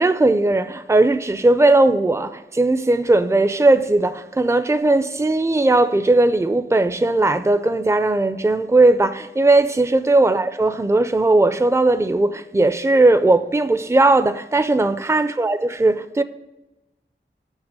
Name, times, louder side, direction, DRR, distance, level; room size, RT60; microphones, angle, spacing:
voice 1, 0.0-16.2, right 2 dB, 15° right, 0.5 m, -18 dB
8.9 x 5.8 x 7.4 m
wide cardioid pair, 55°, 20 cm